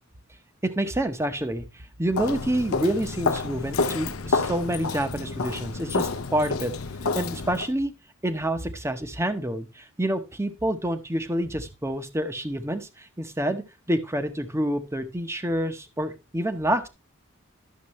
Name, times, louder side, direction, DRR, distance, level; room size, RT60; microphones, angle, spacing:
voice 1, 0.6-6.7 7.1-7.9 8.2-16.9, right 1 dB, 15° right, 9 dB, 0.8 m, -28 dB
Walk footsteps, 2.1-7.7, left 4 dB, 70° left, 0.7 m, -29 dB
11.5 x 6.6 x 3.0 m, 0.26 s
head